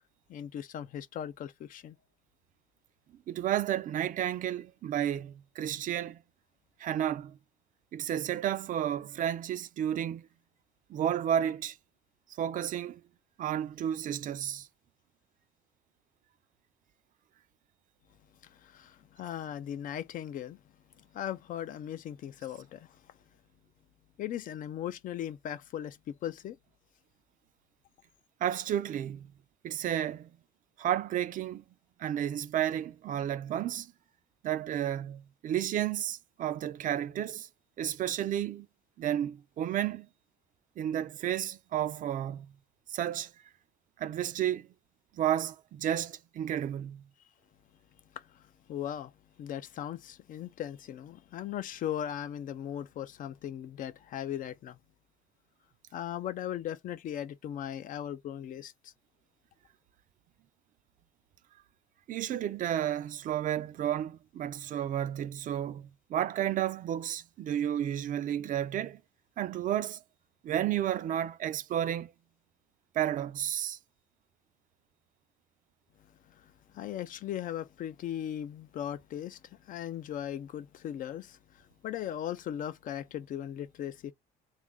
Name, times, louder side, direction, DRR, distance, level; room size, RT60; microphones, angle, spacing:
voice 1, 0.3-2.0 18.4-20.6 21.0-22.9 24.2-26.6 48.2-48.4 48.7-49.1 49.4-54.8 55.9-58.9 76.4-84.1, left 10 dB, 55° left, 0.4 m, -38 dB
voice 2, 3.3-6.2 6.8-7.4 7.9-10.3 10.9-11.8 12.4-13.0 13.4-14.7 28.4-29.3 29.6-30.3 30.8-31.6 32.0-33.9 34.4-37.5 37.8-38.7 39.0-40.1 40.8-42.5 42.9-43.3 44.0-44.7 45.1-47.0 62.1-69.0 69.4-70.0 70.4-72.1 72.9-73.8, right 11 dB, 50° right, 0.4 m, -32 dB
3.6 x 2.4 x 3.4 m
cardioid pair, 110°, 17 cm